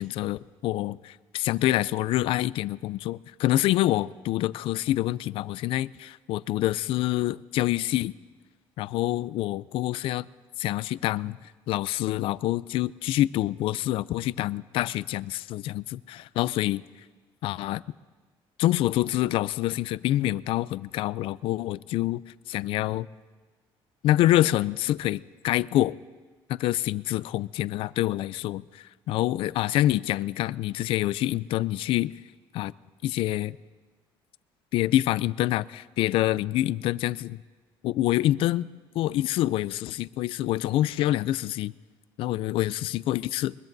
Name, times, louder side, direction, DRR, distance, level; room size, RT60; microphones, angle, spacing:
voice 1, 0.0-8.1 8.8-10.3 10.6-16.8 17.4-17.8 18.6-22.2 22.5-23.1 24.0-26.0 26.5-32.1 32.5-32.7 33.0-33.6 34.7-37.4 37.8-38.7 38.9-41.7 42.2-43.5, left 15 dB, 65° left, 19 dB, 0.4 m, -26 dB
22.5 x 21.0 x 2.6 m, 1.4 s
cardioid pair, 140°, 10 cm